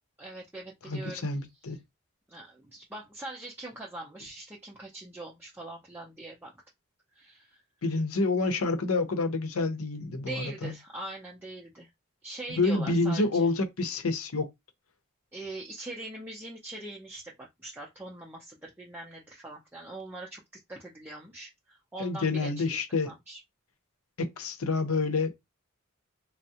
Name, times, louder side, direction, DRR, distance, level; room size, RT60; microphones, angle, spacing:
voice 1, 0.2-1.3 2.3-6.6 7.1-7.6 10.2-11.9 12.2-13.5 15.3-20.4 20.7-22.8 23.1-23.4, right 2 dB, 10° right, 0.5 m, -42 dB
voice 2, 0.9-1.8 7.8-10.7 12.6-14.5 22.0-23.1 24.2-25.3, left 3 dB, 85° left, 0.7 m, -28 dB
3.5 x 2.0 x 2.8 m
head